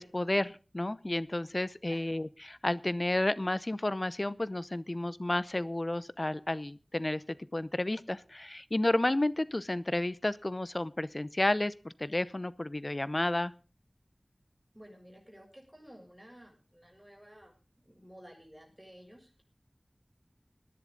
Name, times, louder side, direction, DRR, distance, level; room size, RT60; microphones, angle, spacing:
voice 1, 0.0-7.2 7.5-13.5, left 1 dB, 45° left, 18 dB, 0.7 m, -31 dB
voice 2, 1.8-2.2 14.7-19.4, equal, 10° right, 1 dB, 7.1 m, -54 dB
19.5 x 10.5 x 3.9 m, 0.34 s
wide cardioid pair, 45°, 0 cm